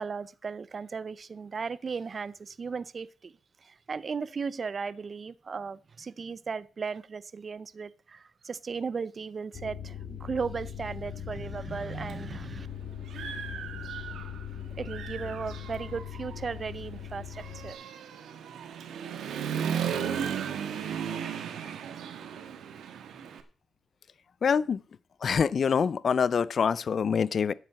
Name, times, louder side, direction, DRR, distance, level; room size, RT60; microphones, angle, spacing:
voice 1, 0.0-3.3 3.6-12.7 14.8-17.8, right 5 dB, 35° right, 0.6 m, -36 dB
sound 1, 9.5-17.7, left 9 dB, 65° left, 1.9 m, -40 dB
Human voice / Motorcycle, 12.1-12.2 12.7-14.5 14.8-23.4, right 8 dB, 85° right, 1.5 m, -36 dB
voice 2, 24.4-24.8 25.2-27.5, left 6 dB, 45° left, 0.4 m, -25 dB
9.7 x 7.5 x 7.5 m
cardioid pair, 140°, 0 cm